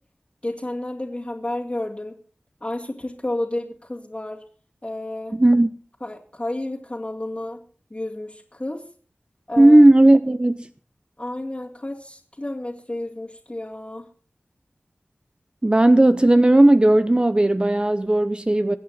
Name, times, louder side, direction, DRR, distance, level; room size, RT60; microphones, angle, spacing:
voice 1, 0.4-2.2 2.6-4.4 4.8-5.4 6.0-7.6 7.9-8.8 9.5-9.8 11.2-14.1, left 1 dB, 30° left, 2.2 m, -31 dB
voice 2, 5.3-5.7 9.6-10.7 15.6-18.8, right 1 dB, 25° right, 0.7 m, -15 dB
23.0 x 8.5 x 4.1 m
wide cardioid pair, 60°, 4 cm